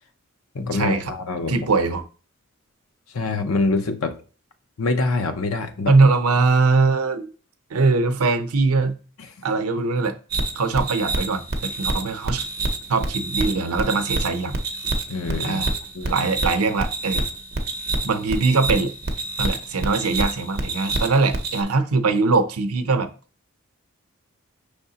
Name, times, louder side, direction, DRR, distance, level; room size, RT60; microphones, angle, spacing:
voice 1, 0.5-1.6 3.1-4.2 4.8-5.9 15.1-15.6 15.9-16.3, left 3 dB, 80° left, 0.7 m, -25 dB
voice 2, 1.5-2.0 5.9-7.3 7.7-9.0 9.4-10.2 10.5-12.5 12.9-14.6 15.4-15.7 16.1-17.2 18.0-18.9 19.4-23.1, right 3 dB, 90° right, 0.6 m, -21 dB
sound 1, 10.3-21.6, right 2 dB, 45° right, 0.6 m, -27 dB
5.5 x 3.4 x 2.8 m
head